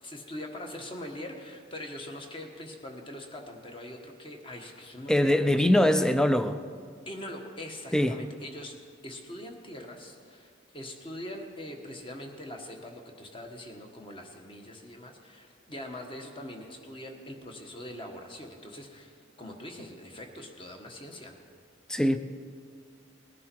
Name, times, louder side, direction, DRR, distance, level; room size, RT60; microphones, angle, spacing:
voice 1, 0.0-6.1 7.0-8.7 9.0-21.4, left 1 dB, 25° left, 3 dB, 1.4 m, -42 dB
voice 2, 5.1-6.6 7.9-8.2 21.9-22.2, left 1 dB, 5° left, 10 dB, 0.4 m, -22 dB
20.0 x 11.0 x 4.6 m, 2.1 s
head